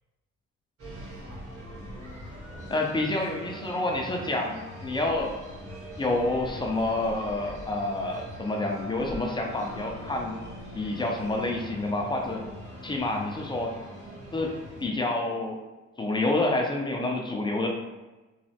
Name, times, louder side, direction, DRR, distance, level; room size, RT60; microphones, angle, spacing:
sound 1, 0.8-14.9, equal, 50° right, 1.2 m, -42 dB
voice 1, 2.7-5.3 6.0-10.4 10.7-12.4 12.8-13.7 14.3-15.6 16.0-17.7, left 2 dB, 15° left, 1 dB, 0.4 m, -28 dB
3.1 x 2.0 x 2.7 m, 1.1 s
cardioid pair, 90°, 30 cm